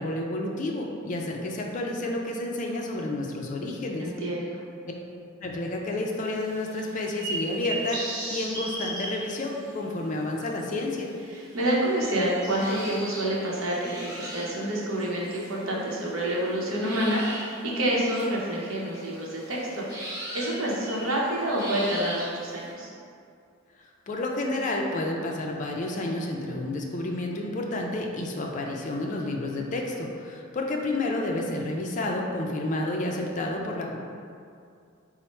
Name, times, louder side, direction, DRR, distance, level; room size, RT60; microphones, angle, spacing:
voice 1, 0.0-4.1 5.4-11.1 23.8-34.0, left 2 dB, 40° left, 0 dB, 0.3 m, -30 dB
voice 2, 4.0-4.6 11.3-22.9, right 1 dB, 85° right, -3 dB, 0.8 m, -28 dB
sound 1, 6.2-9.8 10.6-10.7 11.3-16.4 16.8-22.7, right 1 dB, 20° right, 1.0 m, -38 dB
4.3 x 2.0 x 4.2 m, 2.4 s
head